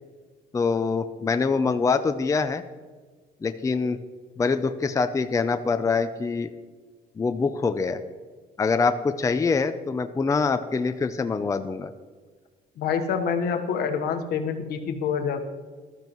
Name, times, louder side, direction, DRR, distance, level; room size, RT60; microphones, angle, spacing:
voice 1, 0.5-2.6 3.4-4.0 4.4-6.5 7.2-8.0 8.6-11.9, left 4 dB, 20° left, 9 dB, 0.5 m, -24 dB
voice 2, 12.8-15.4, left 6 dB, 70° left, 6 dB, 1.3 m, -26 dB
14.5 x 12.5 x 3.1 m, 1.4 s
cardioid pair, 110°, 17 cm